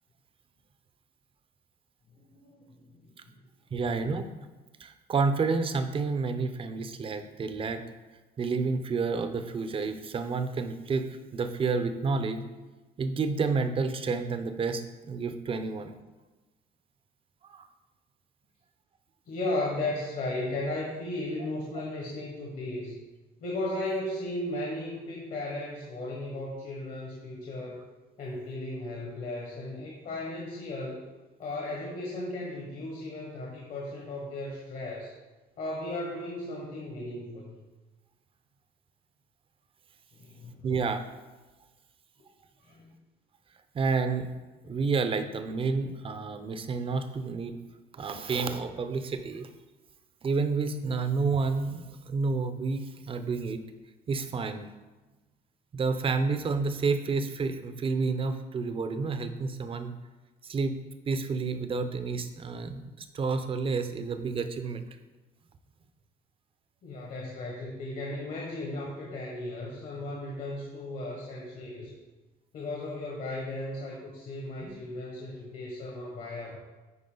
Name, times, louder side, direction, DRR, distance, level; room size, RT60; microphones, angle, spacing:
voice 1, 2.2-3.4 19.3-23.0 23.4-27.8 28.2-31.1 31.4-35.1 35.6-37.6 40.1-40.7 42.6-42.9 66.8-71.9 72.5-76.6, left 2 dB, 55° left, -2 dB, 1.4 m, -36 dB
voice 2, 3.7-4.3 4.8-7.8 8.4-12.4 13.0-15.9 17.4-17.7 40.6-41.0 43.7-44.3 44.6-47.6 47.9-49.5 50.2-53.6 54.1-54.7 55.7-59.9 60.4-64.8, right 4 dB, 30° right, 9 dB, 0.7 m, -30 dB
9.5 x 4.7 x 3.9 m, 1.2 s
cardioid pair, 110°, 17 cm